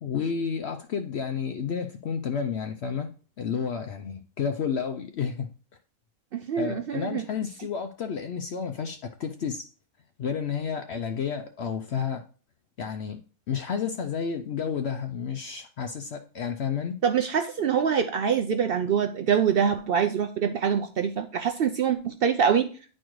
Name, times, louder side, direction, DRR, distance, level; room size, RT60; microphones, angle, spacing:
voice 1, 0.0-5.5 6.6-9.7 10.2-12.2 12.8-13.2 13.5-17.0, left 6 dB, 60° left, 6 dB, 0.7 m, -31 dB
voice 2, 6.3-7.2 17.0-22.7, right 7 dB, 70° right, 6 dB, 0.5 m, -25 dB
9.9 x 4.3 x 3.1 m, 0.38 s
omnidirectional pair, 1.5 m